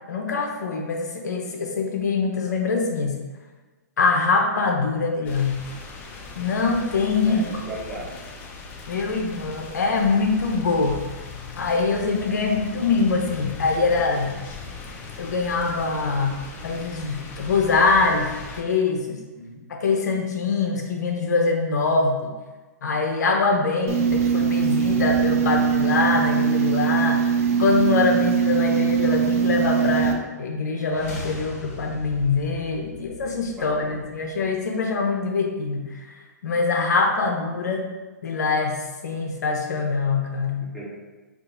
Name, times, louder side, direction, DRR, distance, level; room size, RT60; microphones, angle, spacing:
voice 1, 0.1-3.2 4.0-5.6 6.3-7.4 8.9-11.0 11.6-14.3 15.2-19.2 19.7-22.3 22.8-27.2 27.6-37.9 38.2-40.6, left 4 dB, 70° left, 2 dB, 0.5 m, -23 dB
sound 1, 5.2-18.6, left 3 dB, 20° left, 0.4 m, -39 dB
voice 2, 7.3-8.1 19.3-19.6 33.6-34.0 40.6-40.9, right 1 dB, 5° right, -9 dB, 0.9 m, -37 dB
sound 2, 23.9-30.1, right 7 dB, 50° right, 0.4 m, -21 dB
sound 3, 30.8-34.8, left 3 dB, 50° left, 1.0 m, -40 dB
2.8 x 2.4 x 3.6 m, 1.2 s
hypercardioid pair, 135°, 10 cm